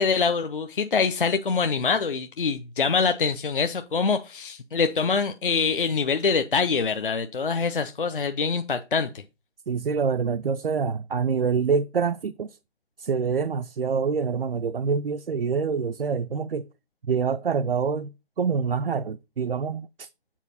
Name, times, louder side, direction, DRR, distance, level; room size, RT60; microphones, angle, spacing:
voice 1, 0.0-9.1, left 5 dB, 55° left, 0.6 m, -24 dB
voice 2, 9.7-12.6 13.0-16.7 17.1-18.1 18.4-20.1, right 5 dB, 60° right, 0.4 m, -26 dB
7.3 x 4.6 x 4.1 m
figure-of-eight pair, 170°, 33 cm